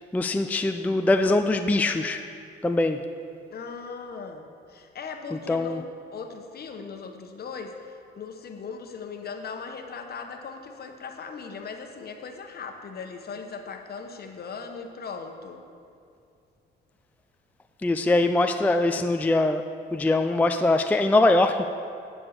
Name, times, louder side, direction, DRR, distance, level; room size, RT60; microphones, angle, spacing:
voice 1, 0.1-2.2 2.6-3.0 5.3-5.8 17.8-19.6 19.9-21.7, left 2 dB, 10° left, 7 dB, 0.4 m, -22 dB
voice 2, 3.5-5.8 6.1-15.6, left 5 dB, 50° left, 5 dB, 1.0 m, -38 dB
9.9 x 5.4 x 6.7 m, 2.4 s
cardioid pair, 90°, 20 cm